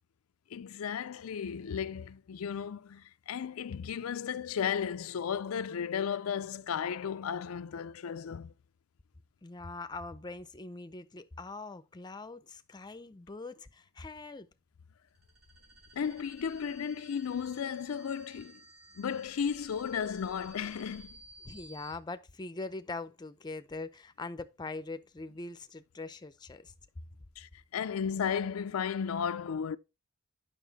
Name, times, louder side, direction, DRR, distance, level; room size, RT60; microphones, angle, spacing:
voice 1, 0.5-8.5 15.9-18.6 19.0-21.2 27.4-29.8, left 7 dB, 80° left, 0.4 m, -34 dB
voice 2, 9.4-14.5 21.4-26.7, left 3 dB, 20° left, 0.5 m, -42 dB
sound 1, 15.1-21.9, right 1 dB, 80° right, 4.0 m, -55 dB
9.3 x 5.7 x 4.0 m
head